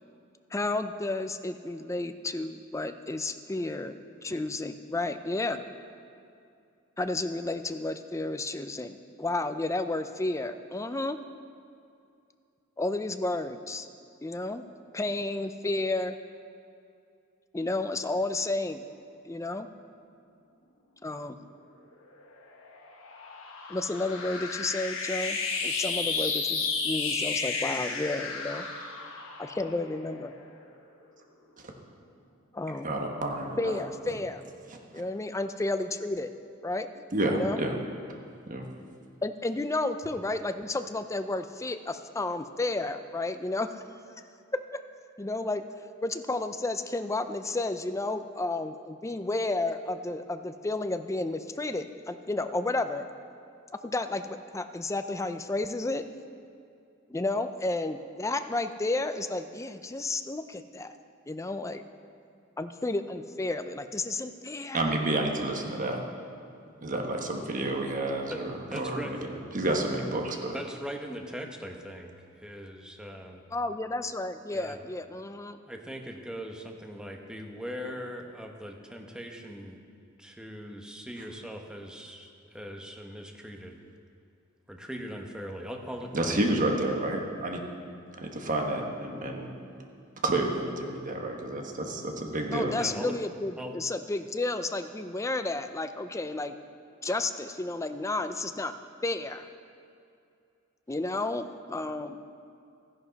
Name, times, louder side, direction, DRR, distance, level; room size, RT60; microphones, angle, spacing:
voice 1, 0.5-5.6 7.0-11.2 12.8-13.9 14.2-14.6 14.9-16.2 17.5-18.8 19.2-19.7 21.0-21.4 23.7-28.7 29.4-30.3 32.5-32.9 33.6-34.4 34.9-36.3 36.6-36.9 37.3-37.6 39.2-43.8 44.5-44.6 45.2-45.6 46.0-53.1 53.8-56.0 57.1-60.9 61.3-61.8 62.6-65.0 73.5-75.6 92.5-96.5 97.0-98.7 99.0-99.5 100.9-102.2, left 2 dB, 15° left, 9 dB, 0.4 m, -32 dB
sound 1, 22.1-30.8, left 4 dB, 70° left, 1.3 m, -33 dB
voice 2, 32.8-33.8 37.1-37.8 38.5-38.6 64.7-66.0 66.8-69.2 69.5-70.6 86.1-87.6 88.2-89.5 90.2-92.7, right 2 dB, 40° right, 2 dB, 1.3 m, -30 dB
voice 3, 68.3-69.2 70.5-72.1 72.4-73.4 74.5-74.8 75.7-79.8 80.2-82.3 82.5-83.8 84.7-86.4 92.8-93.2 93.6-93.7, equal, 5° right, 2 dB, 0.9 m, -40 dB
14.0 x 11.0 x 4.1 m, 2.5 s
head